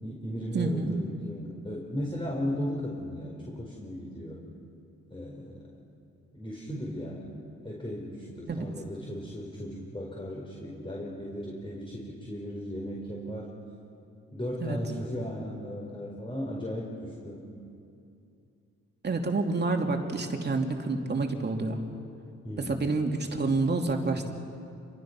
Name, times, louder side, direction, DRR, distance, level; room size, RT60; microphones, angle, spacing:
voice 1, 0.0-4.4 5.1-5.6 6.3-7.3 7.6-13.5 14.3-17.4 22.4-22.9, equal, 15° left, -3 dB, 4.8 m, -36 dB
voice 2, 0.5-0.9 8.5-8.7 14.6-14.8 19.0-21.8 22.6-24.3, right 3 dB, 35° right, 3 dB, 2.8 m, -28 dB
27.5 x 22.5 x 6.1 m, 2.6 s
cardioid pair, 90°, 30 cm